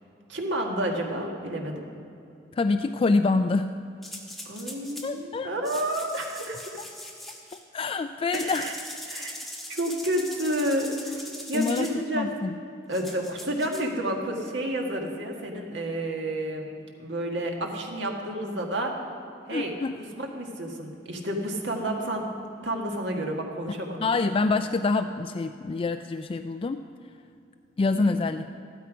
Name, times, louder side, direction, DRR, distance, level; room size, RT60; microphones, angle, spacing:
voice 1, 0.3-1.9 4.5-6.8 8.3-8.8 9.1-9.4 9.7-12.3 12.9-16.7 17.0-18.9 19.5-19.7 20.2-22.3 22.6-24.1 27.9-28.2, right 1 dB, 75° right, 1 dB, 1.8 m, -30 dB
voice 2, 2.6-3.7 5.0-5.5 7.7-8.7 11.5-12.5 19.5-20.0 24.0-26.9 27.8-28.6, left 3 dB, 30° left, 8 dB, 0.3 m, -26 dB
sound 1, 4.0-5.1 5.6-7.6 8.3-12.0 12.9-13.9, left 1 dB, ahead, 1.5 m, -41 dB
14.5 x 12.5 x 5.1 m, 2.7 s
head